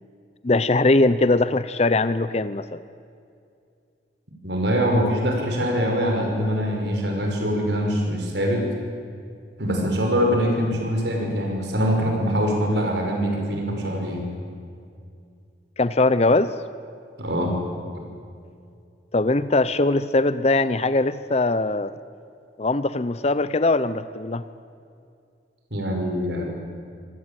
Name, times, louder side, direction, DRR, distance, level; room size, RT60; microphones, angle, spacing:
voice 1, 0.4-2.8 15.8-16.5 19.1-21.9 22.6-24.4, left 2 dB, 35° left, 14 dB, 0.6 m, -21 dB
voice 2, 4.4-8.7 9.6-14.2 17.2-17.5 25.7-26.4, equal, 70° right, 1 dB, 5.7 m, -23 dB
26.5 x 18.0 x 9.1 m, 2.4 s
head